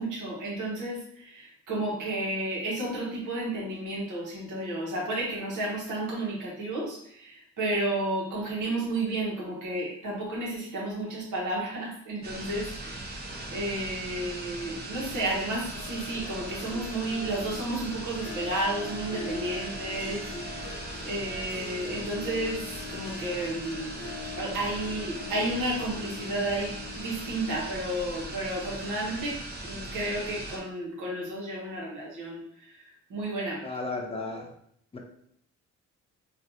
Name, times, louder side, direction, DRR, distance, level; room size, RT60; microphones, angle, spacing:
voice 1, 0.0-20.2 20.5-20.8 21.0-23.9 24.4-29.4 29.6-32.4 33.1-33.6, right 1 dB, 80° right, -4 dB, 1.2 m, -32 dB
sound 1, 12.2-30.6, right 1 dB, 35° right, 0.7 m, -39 dB
Harp, 15.7-27.9, left 5 dB, 50° left, 0.8 m, -42 dB
voice 2, 33.6-34.5 34.9-35.0, left 3 dB, 20° left, 1 dB, 0.6 m, -34 dB
3.2 x 2.5 x 2.7 m, 0.69 s
cardioid pair, 90°, 30 cm